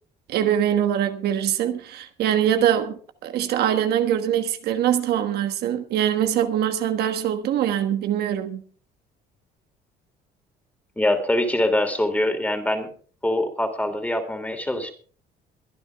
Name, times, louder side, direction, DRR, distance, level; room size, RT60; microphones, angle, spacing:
voice 1, 0.3-8.6, right 10 dB, 70° right, 1.4 m, -23 dB
voice 2, 11.0-12.9 13.2-14.9, left 1 dB, 10° left, 3.1 m, -23 dB
23.0 x 10.0 x 3.5 m
cardioid pair, 110°, 17 cm